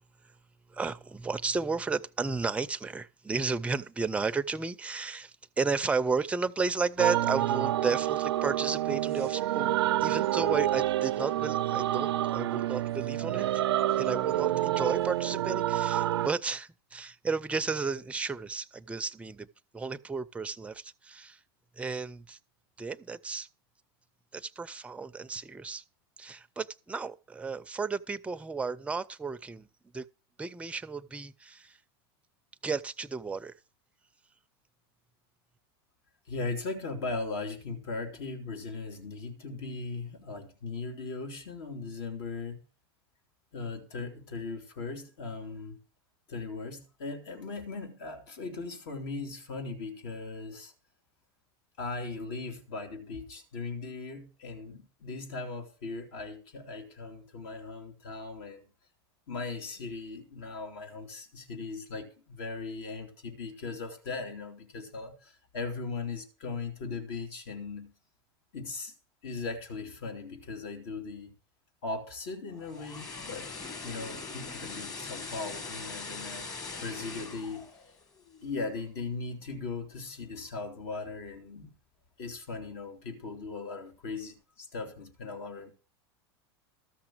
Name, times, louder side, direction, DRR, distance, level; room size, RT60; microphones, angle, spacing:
voice 1, 0.7-13.6 14.0-19.5 19.7-21.4 21.8-22.4 22.8-23.5 24.3-25.8 26.2-29.7 29.9-30.1 30.4-31.8 32.6-33.5, right 4 dB, 10° right, 0.5 m, -33 dB
sound 1, 7.0-16.3, right 13 dB, 90° right, 0.5 m, -28 dB
voice 2, 36.3-42.6 43.5-45.8 46.3-50.7 51.8-58.7 59.3-67.9 68.5-68.9 69.2-71.3 71.8-73.5 73.8-76.5 76.8-77.7 78.4-81.7 82.2-85.7, left 3 dB, 70° left, 2.6 m, -38 dB
sound 2, 72.5-78.7 79.0-79.2, left 4 dB, 25° left, 1.6 m, -41 dB
13.5 x 5.9 x 6.1 m
supercardioid pair, 115°, 13 cm